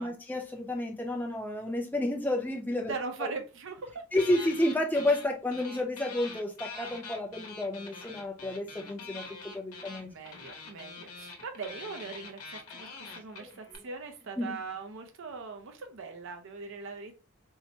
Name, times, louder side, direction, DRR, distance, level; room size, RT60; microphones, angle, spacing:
voice 1, 0.0-2.9 3.2-3.3 4.1-10.1 12.7-12.8 13.4-13.5 14.4-14.5, left 1 dB, 10° left, 2 dB, 0.6 m, -31 dB
voice 2, 2.9-4.5 8.8-8.9 9.8-17.1, right 4 dB, 60° right, 6 dB, 0.5 m, -41 dB
sound 1, 4.2-5.3 5.5-13.8, left 4 dB, 90° left, 0.9 m, -44 dB
4.5 x 2.0 x 2.7 m, 0.32 s
head